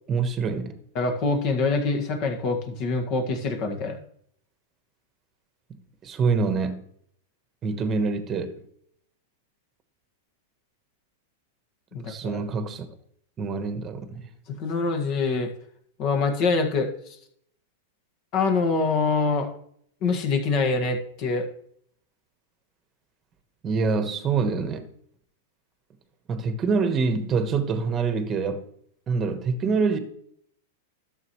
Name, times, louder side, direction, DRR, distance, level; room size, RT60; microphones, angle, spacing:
voice 1, 0.1-0.7 6.0-6.8 7.6-8.5 12.0-12.9 13.4-14.2 23.6-24.9 26.3-28.6 29.1-30.0, right 4 dB, 25° right, 1.2 m, -25 dB
voice 2, 1.0-4.0 11.9-12.4 14.5-15.5 16.0-16.9 18.3-19.5 20.0-21.5, left 4 dB, 45° left, 1.7 m, -25 dB
12.0 x 7.1 x 3.1 m
hypercardioid pair, 135°, 0 cm